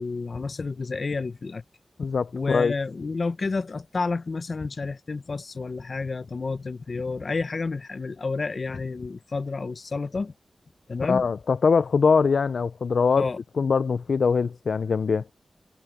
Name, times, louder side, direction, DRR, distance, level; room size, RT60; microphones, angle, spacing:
voice 1, 0.0-1.6 2.0-10.3 10.9-11.2 13.2-13.4, left 4 dB, 55° left, 0.8 m, -30 dB
voice 2, 2.0-2.7 11.0-13.3 13.6-15.2, left 5 dB, 75° left, 0.4 m, -22 dB
wide cardioid pair, 100°, 0 cm